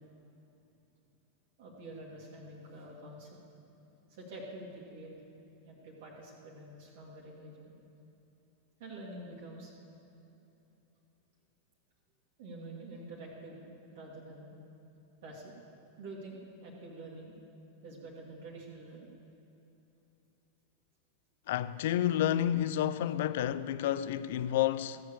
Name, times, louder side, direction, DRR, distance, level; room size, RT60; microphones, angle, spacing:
voice 1, 1.6-3.4 4.1-5.1 5.6-7.8 8.8-9.7 12.4-13.7 13.9-14.6 15.2-15.5 16.0-17.3 17.8-19.1, right 2 dB, 50° right, 1.9 m, -47 dB
voice 2, 21.5-25.0, left 11 dB, 55° left, 0.4 m, -30 dB
15.0 x 6.9 x 6.9 m
figure-of-eight pair, 90°, 0 cm